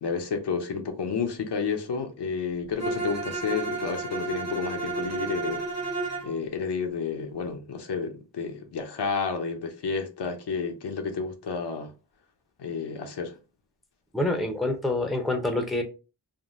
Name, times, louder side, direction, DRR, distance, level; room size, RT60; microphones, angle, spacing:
voice 1, 0.0-11.9 12.6-13.4, left 5 dB, 65° left, 0.7 m, -31 dB
Bowed string instrument, 2.8-6.3, right 3 dB, 40° right, 1.0 m, -31 dB
voice 2, 14.1-15.8, left 2 dB, ahead, 0.6 m, -26 dB
3.6 x 2.1 x 2.5 m
wide cardioid pair, 80°, 44 cm